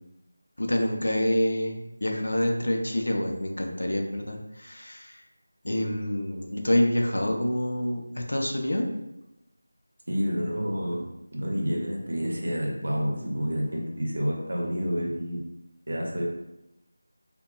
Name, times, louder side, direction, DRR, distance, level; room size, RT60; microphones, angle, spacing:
voice 1, 0.6-5.2 5.6-8.9, left 1 dB, 80° left, 1 dB, 0.5 m, -27 dB
voice 2, 10.1-15.4 15.9-16.3, equal, 65° right, -2 dB, 0.7 m, -29 dB
2.9 x 2.1 x 2.3 m, 0.92 s
figure-of-eight pair, 175°, 0 cm